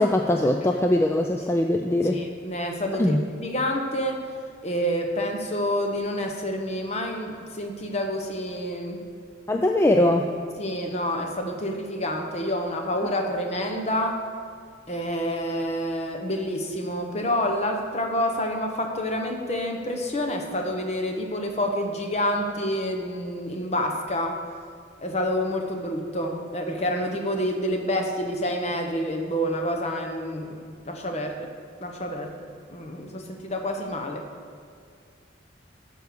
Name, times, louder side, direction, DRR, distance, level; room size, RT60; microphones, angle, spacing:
voice 1, 0.0-2.2 3.0-3.2 9.5-10.2, left 1 dB, 15° left, 3 dB, 0.3 m, -21 dB
voice 2, 2.1-4.2 4.6-9.0 10.6-14.2 14.9-24.4 25.0-31.5 31.8-32.3 32.7-34.2, equal, 35° left, 3 dB, 1.0 m, -28 dB
12.0 x 4.7 x 6.8 m, 2.2 s
head